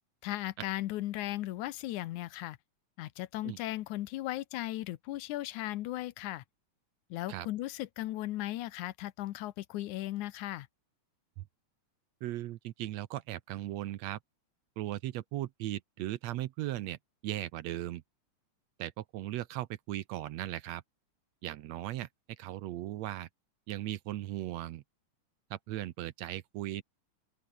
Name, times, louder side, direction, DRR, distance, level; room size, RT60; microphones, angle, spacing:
voice 1, 0.2-2.6 3.0-6.4 7.1-10.7, left 15 dB, 85° left, 2.3 m, -37 dB
voice 2, 12.2-14.2 14.8-18.0 18.8-20.8 21.4-22.1 22.4-23.3 23.7-24.8 25.5-26.8, right 14 dB, 75° right, 1.9 m, -37 dB
open air
omnidirectional pair, 3.4 m